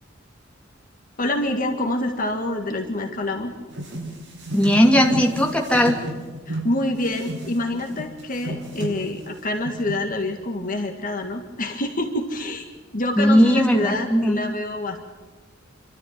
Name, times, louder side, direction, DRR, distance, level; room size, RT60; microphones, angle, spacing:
voice 1, 1.2-3.5 6.5-12.7 12.9-15.0, left 1 dB, 45° left, 3 dB, 1.8 m, -26 dB
sound 1, 3.7-6.7 7.0-9.3 9.7-10.0, right 1 dB, 60° right, 5.9 m, -33 dB
voice 2, 4.5-6.0 13.2-14.4, equal, 5° left, 0 dB, 2.7 m, -18 dB
28.0 x 13.0 x 9.0 m, 1.4 s
head